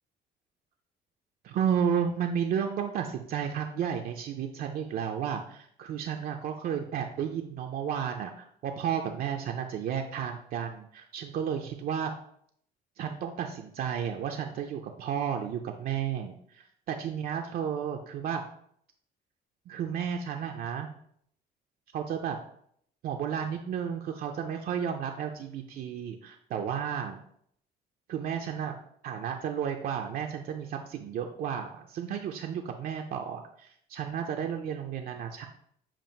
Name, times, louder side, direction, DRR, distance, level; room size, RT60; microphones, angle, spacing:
voice 1, 1.4-12.1 13.0-18.4 19.7-20.9 21.9-22.4 23.0-27.2 28.1-28.8 29.0-35.5, right 8 dB, 60° right, 3 dB, 0.5 m, -32 dB
7.4 x 2.5 x 5.2 m, 0.66 s
cardioid pair, 155°, 18 cm